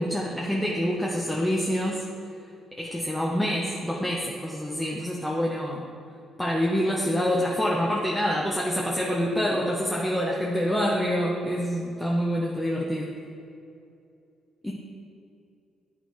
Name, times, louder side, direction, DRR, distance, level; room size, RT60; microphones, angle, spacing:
voice 1, 0.0-2.0 2.8-5.9 6.4-13.1 14.6-14.7, equal, 5° left, -3 dB, 0.7 m, -26 dB
9.1 x 4.1 x 3.1 m, 2.6 s
cardioid pair, 90°, 0 cm